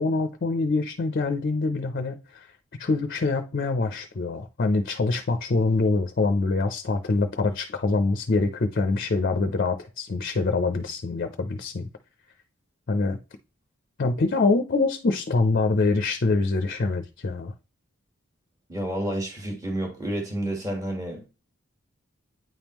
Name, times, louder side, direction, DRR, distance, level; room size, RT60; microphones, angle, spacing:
voice 1, 0.0-2.5 2.8-11.9 12.9-13.2 14.0-17.5, left 3 dB, 45° left, 0.5 m, -25 dB
voice 2, 18.7-21.3, right 1 dB, 15° right, 1.5 m, -30 dB
9.1 x 3.6 x 3.0 m
head